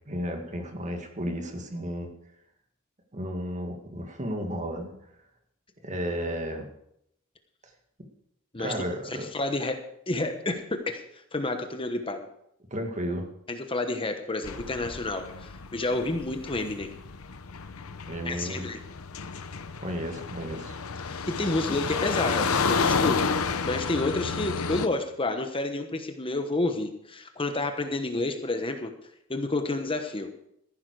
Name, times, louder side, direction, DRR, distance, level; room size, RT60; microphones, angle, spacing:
voice 1, 0.1-2.1 3.1-4.9 5.8-6.7 8.6-9.3 12.7-13.3 18.1-18.7 19.8-20.8, equal, 35° right, 4 dB, 2.0 m, -33 dB
voice 2, 9.1-11.0 11.3-12.3 13.5-16.9 18.2-18.8 21.0-28.9 29.3-30.3, left 2 dB, 25° left, 6 dB, 1.1 m, -30 dB
sound 1, 14.4-24.9, left 5 dB, 80° left, 0.9 m, -31 dB
14.5 x 11.5 x 4.8 m, 0.75 s
head